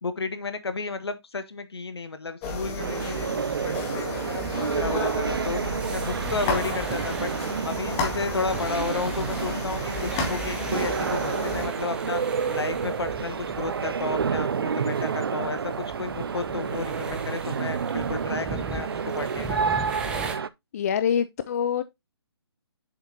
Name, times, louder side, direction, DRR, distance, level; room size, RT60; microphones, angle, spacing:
voice 1, 0.0-5.6 5.9-7.3 7.6-12.2 12.5-19.6, left 4 dB, 70° left, 1.3 m, -32 dB
sound 1, 2.4-11.7, left 3 dB, 20° left, 1.8 m, -32 dB
sound 2, 2.8-20.5, right 6 dB, 60° right, 0.5 m, -29 dB
sound 3, 5.0-20.4, right 4 dB, 5° right, 0.7 m, -40 dB
voice 2, 20.7-21.8, left 8 dB, 35° left, 0.4 m, -25 dB
7.3 x 5.8 x 2.7 m
figure-of-eight pair, 140°, 14 cm